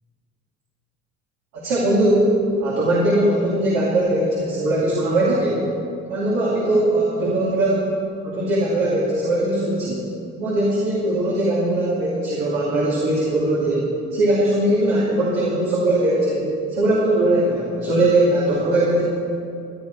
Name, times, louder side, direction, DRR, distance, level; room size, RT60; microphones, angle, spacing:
voice 1, 1.5-2.3 2.6-5.6 6.1-7.9 8.2-10.0 10.4-19.0, right 1 dB, 75° right, -6 dB, 2.6 m, -20 dB
17.5 x 9.8 x 4.7 m, 2.6 s
hypercardioid pair, 55°, 35 cm